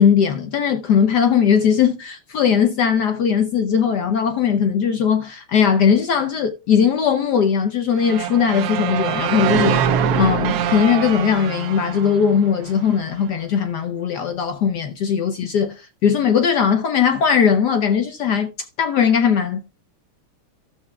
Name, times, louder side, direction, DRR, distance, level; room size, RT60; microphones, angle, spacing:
voice 1, 0.0-18.5 18.8-19.6, left 7 dB, 70° left, 1.0 m, -19 dB
sound 1, 8.0-13.0, right 8 dB, 75° right, 0.9 m, -23 dB
14.5 x 6.7 x 2.2 m
omnidirectional pair, 2.4 m